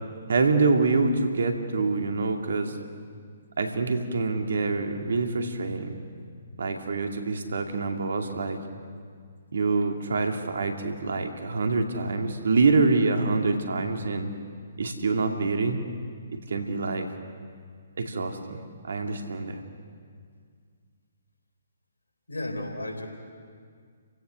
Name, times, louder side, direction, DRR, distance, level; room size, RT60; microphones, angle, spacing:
voice 1, 0.3-2.8 3.6-5.9 6.6-8.6 9.5-14.3 14.8-15.8 16.5-17.1 18.0-19.6, right 3 dB, 70° right, 4 dB, 2.4 m, -26 dB
voice 2, 22.3-23.1, left 1 dB, 85° left, 3 dB, 4.0 m, -33 dB
30.0 x 16.5 x 6.5 m, 2.1 s
figure-of-eight pair, 135°, 0 cm